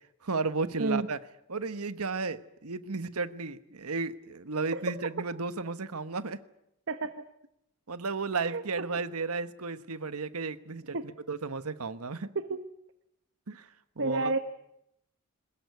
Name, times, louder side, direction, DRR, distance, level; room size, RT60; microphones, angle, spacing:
voice 1, 0.2-1.2 1.5-6.4 7.9-12.3 13.5-13.7 14.0-14.3, right 4 dB, 80° right, 12 dB, 1.2 m, -34 dB
voice 2, 14.0-14.4, right 3 dB, 55° right, 9 dB, 1.1 m, -29 dB
22.0 x 20.5 x 9.5 m, 0.81 s
head